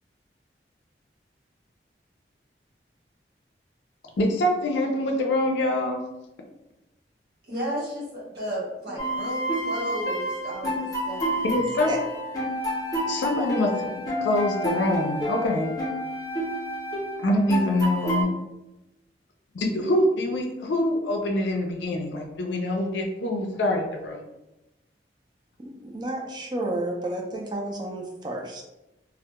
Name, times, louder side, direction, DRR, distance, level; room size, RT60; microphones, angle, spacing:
voice 1, 4.2-6.0 11.4-11.9 13.1-15.7 17.2-18.4 19.5-24.2, left 1 dB, 80° left, 2 dB, 0.4 m, -25 dB
voice 2, 7.5-11.4, right 1 dB, 65° right, -6 dB, 1.1 m, -33 dB
sound 1, 9.0-18.2, equal, 20° left, 0.6 m, -29 dB
voice 3, 11.5-12.0 25.6-28.6, right 1 dB, 25° right, 0 dB, 0.3 m, -32 dB
2.2 x 2.0 x 2.8 m, 0.96 s
head